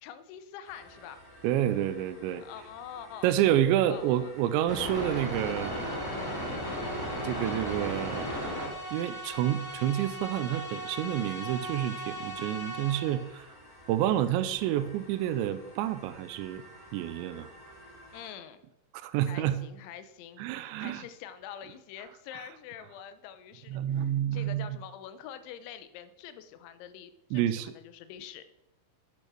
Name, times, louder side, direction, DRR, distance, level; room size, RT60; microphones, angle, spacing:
voice 1, 0.0-1.2 2.4-3.3 3.9-4.3 5.7-6.0 18.1-18.6 19.3-28.5, left 9 dB, 85° left, 12 dB, 3.1 m, -45 dB
sound 1, 0.7-18.3, equal, 25° left, 0.5 m, -40 dB
voice 2, 1.4-2.4 3.2-5.7 7.2-8.4 8.9-13.5 13.9-16.6 16.9-17.5 18.9-19.6 20.4-21.0 23.7-24.7 27.3-27.7, right 12 dB, 85° right, 13 dB, 2.9 m, -29 dB
sound 2, 4.9-13.4, right 1 dB, 65° left, 5.3 m, -41 dB
8.9 x 8.4 x 6.0 m, 0.87 s
omnidirectional pair, 5.3 m